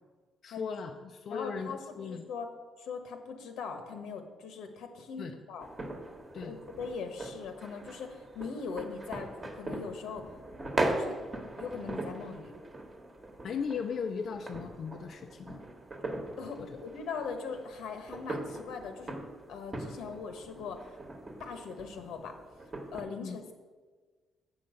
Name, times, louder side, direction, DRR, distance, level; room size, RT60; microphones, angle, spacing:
voice 1, 0.4-2.3 5.2-5.3 6.3-6.6 13.4-15.6 16.6-16.7 23.2-23.4, left 6 dB, 50° left, 4 dB, 0.5 m, -37 dB
voice 2, 1.3-2.5 2.8-5.7 6.4-10.3 10.9-11.2 11.6-12.5 16.4-19.2 19.5-21.0 21.4-22.4 22.9-23.5, left 5 dB, 85° left, 6 dB, 1.3 m, -40 dB
sound 1, 5.6-23.0, right 2 dB, 20° right, 1.2 m, -40 dB
7.8 x 5.6 x 7.6 m, 1.4 s
cardioid pair, 130°, 0 cm